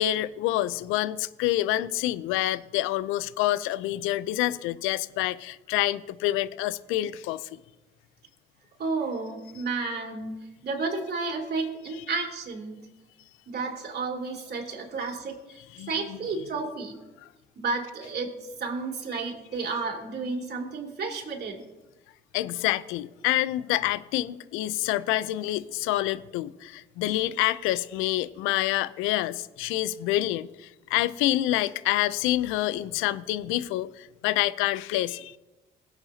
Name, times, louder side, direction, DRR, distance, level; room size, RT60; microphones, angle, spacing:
voice 1, 0.0-7.4 15.8-15.9 22.3-35.4, left 15 dB, 80° left, 0.5 m, -27 dB
voice 2, 8.8-12.9 13.5-15.6 15.9-17.0 17.6-21.6, right 4 dB, 55° right, 3.1 m, -32 dB
21.5 x 8.0 x 2.8 m
supercardioid pair, 55°, 20 cm